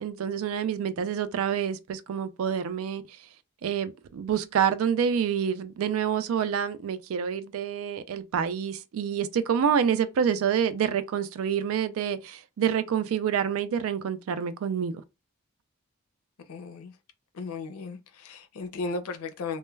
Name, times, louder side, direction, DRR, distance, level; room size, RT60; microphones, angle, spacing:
voice 1, 0.0-3.0 3.6-15.0, right 8 dB, 70° right, 0.3 m, -27 dB
voice 2, 16.5-17.0 17.3-19.6, left 3 dB, 85° left, 0.5 m, -35 dB
2.2 x 2.1 x 3.1 m
head